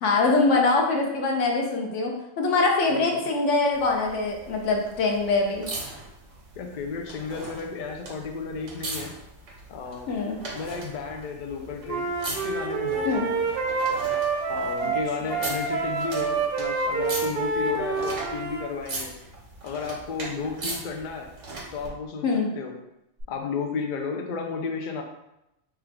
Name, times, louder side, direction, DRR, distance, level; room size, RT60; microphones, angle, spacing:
voice 1, 0.0-5.7 10.1-10.4 13.0-13.3 14.8-14.9 22.2-22.5, left 3 dB, 80° left, 1 dB, 1.1 m, -23 dB
voice 2, 2.9-3.3 6.6-9.1 9.7-10.1 10.5-13.5 14.5-19.1 19.6-21.3 21.7-22.3 22.6-22.7 23.3-25.0, left 5 dB, 55° left, 3 dB, 0.5 m, -33 dB
sound 1, 3.7-21.9 23.2-23.3, right 2 dB, 80° right, 1.3 m, -39 dB
Wind instrument woodwind instrument, 11.9-18.7, right 4 dB, 60° right, 0.7 m, -27 dB
3.4 x 2.4 x 4.5 m, 0.88 s
omnidirectional pair, 1.3 m